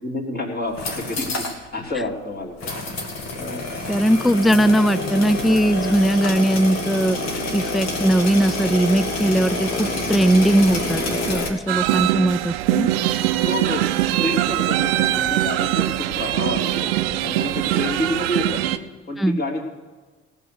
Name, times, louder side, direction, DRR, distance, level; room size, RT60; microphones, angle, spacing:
voice 1, 0.0-2.7 3.4-3.7 12.8-13.0 13.4-13.9 14.2-16.9 17.2-18.6 19.1-19.7, left 1 dB, 35° left, -1 dB, 3.5 m, -28 dB
sound 1, 0.6-1.6 1.9-2.0 2.6-11.5, left 2 dB, 60° left, 2.2 m, -27 dB
voice 2, 3.9-7.2 7.5-12.9 19.2-19.4, right 1 dB, ahead, 17 dB, 0.4 m, -19 dB
sound 2, 11.7-18.8, right 14 dB, 80° right, 0.6 m, -22 dB
18.0 x 6.6 x 6.9 m, 1.3 s
hypercardioid pair, 50°, 30 cm